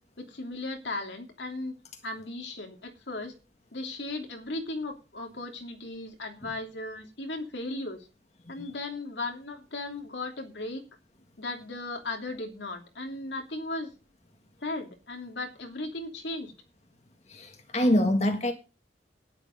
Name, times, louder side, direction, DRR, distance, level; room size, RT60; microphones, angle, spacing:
voice 1, 0.2-1.8 2.0-3.3 3.7-8.1 8.5-10.8 11.4-13.9 14.6-16.5, left 2 dB, 80° left, 3.0 m, -36 dB
voice 2, 17.3-18.5, left 1 dB, 40° left, 1.6 m, -25 dB
11.0 x 10.0 x 5.3 m
head